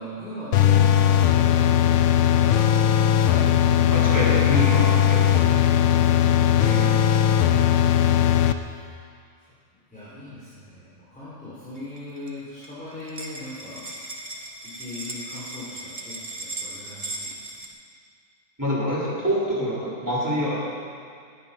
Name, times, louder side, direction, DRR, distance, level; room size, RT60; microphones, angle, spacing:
voice 1, 0.0-2.5 3.1-4.1 5.9-6.4 8.6-8.8 9.9-13.8 14.7-17.5, left 1 dB, 5° left, -11 dB, 4.1 m, -40 dB
sound 1, 0.5-8.5, left 10 dB, 70° left, 0.9 m, -18 dB
voice 2, 3.9-5.3 5.5-5.6 6.6-7.0 18.6-20.6, equal, 15° right, -9 dB, 4.5 m, -26 dB
sound 2, 11.8-12.3 12.6-12.7 12.9-17.7, right 2 dB, 30° right, 1.2 m, -37 dB
18.5 x 9.4 x 5.8 m, 2.3 s
omnidirectional pair, 1.4 m